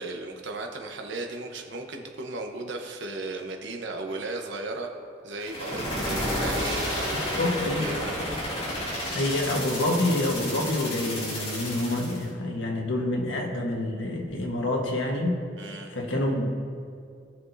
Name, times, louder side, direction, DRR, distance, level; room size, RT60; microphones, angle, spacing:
voice 1, 0.0-4.9 5.2-7.4 7.7-8.2 15.6-15.9, right 2 dB, 65° right, 3 dB, 1.0 m, -35 dB
sound 1, 5.4-12.2, left 1 dB, 30° left, 2.5 m, -31 dB
voice 2, 7.2-7.9 9.1-15.4 15.9-16.5, left 1 dB, 80° left, 1 dB, 1.4 m, -27 dB
18.0 x 6.0 x 2.7 m, 2.3 s
head